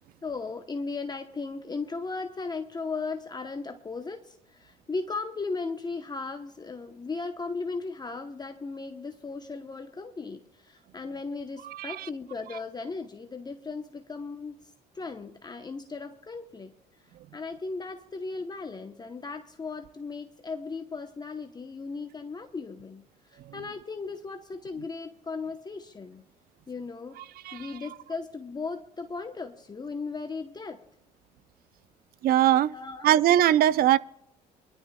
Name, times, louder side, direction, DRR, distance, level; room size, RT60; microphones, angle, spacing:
voice 1, 0.2-16.7 17.3-26.2 26.7-27.2 27.5-30.8 32.7-33.1, left 4 dB, 25° left, 0.9 m, -37 dB
voice 2, 11.7-12.1 27.4-27.7 32.2-32.7 33.0-34.0, right 12 dB, 60° right, 0.5 m, -21 dB
24.0 x 11.5 x 2.2 m
supercardioid pair, 75°, 17 cm